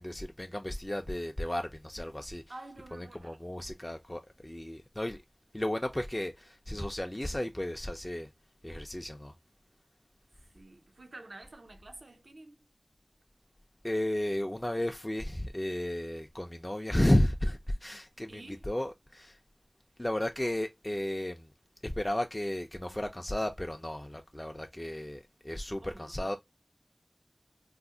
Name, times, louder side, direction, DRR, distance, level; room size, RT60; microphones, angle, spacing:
voice 1, 0.0-2.4 2.9-5.2 5.5-8.3 8.6-9.3 13.8-19.4 20.0-21.5 21.8-26.4, left 1 dB, 25° left, 0.4 m, -33 dB
voice 2, 2.5-3.4 10.3-12.7 18.3-18.7 25.7-26.4, right 2 dB, 80° right, 0.5 m, -50 dB
2.4 x 2.0 x 3.7 m
wide cardioid pair, 40°, 0 cm